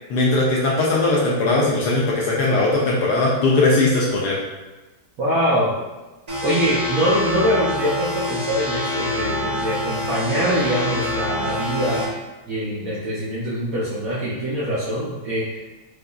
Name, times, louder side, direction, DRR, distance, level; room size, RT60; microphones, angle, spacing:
voice 1, 0.1-4.4, left 2 dB, 75° left, -4 dB, 1.0 m, -19 dB
voice 2, 5.2-5.7 6.4-12.0 12.5-15.5, equal, 65° right, -8 dB, 0.9 m, -23 dB
sound 1, 6.3-12.0, left 1 dB, 50° right, 0.4 m, -26 dB
4.7 x 2.5 x 2.3 m, 1.1 s
omnidirectional pair, 2.1 m